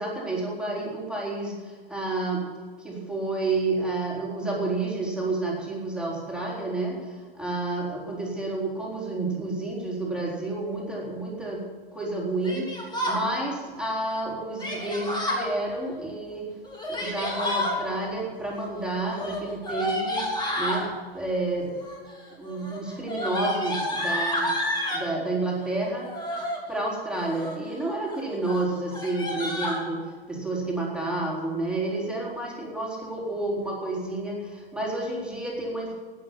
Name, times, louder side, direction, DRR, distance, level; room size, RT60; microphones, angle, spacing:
voice 1, 0.0-2.5 2.8-11.6 11.9-16.5 16.9-20.3 20.6-20.9 21.1-21.8 22.4-24.5 24.9-26.1 26.7-30.0 30.3-35.9, right 2 dB, 5° right, -4 dB, 4.0 m, -30 dB
Yell, 12.4-13.2 14.6-15.5 16.6-17.8 19.1-20.9 21.7-22.1 22.4-25.1 26.0-26.6 27.1-27.7 28.1-28.2 28.4-28.6 28.9-29.8, left 1 dB, 15° left, 3.3 m, -30 dB
12.5 x 10.0 x 7.4 m, 1.5 s
hypercardioid pair, 100°, 30 cm